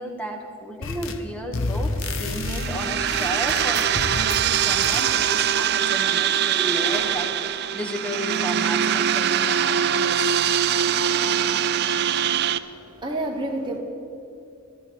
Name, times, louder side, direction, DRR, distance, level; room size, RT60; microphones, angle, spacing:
voice 1, 0.0-10.4, equal, 5° left, 3 dB, 1.1 m, -33 dB
sound 1, 0.8-1.3 1.5-4.5 4.8-5.1, left 2 dB, 60° left, 0.8 m, -30 dB
sound 2, 2.0-4.1 4.5-8.0 8.2-8.3 8.6-8.7 9.0-10.2 11.2-11.3, equal, 90° left, 4.4 m, -46 dB
sound 3, 2.3-12.6, right 9 dB, 45° right, 0.4 m, -23 dB
voice 2, 12.2-13.8, right 1 dB, 20° right, -1 dB, 1.2 m, -31 dB
13.5 x 12.0 x 6.4 m, 2.6 s
head